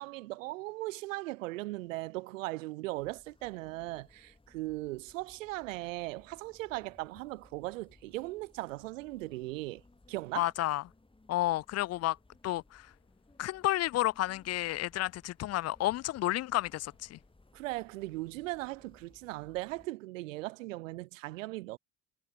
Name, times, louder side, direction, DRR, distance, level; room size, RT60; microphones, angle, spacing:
voice 1, 0.0-9.8 10.1-10.5 17.5-21.8, right 20 dB, 75° right, 0.6 m, -38 dB
sound 1, 2.9-19.9, left 2 dB, 15° left, 6.5 m, -63 dB
voice 2, 10.4-10.8 11.3-12.2 12.4-12.9 13.4-17.2, left 15 dB, 40° left, 0.6 m, -31 dB
figure-of-eight pair, 55°, 39 cm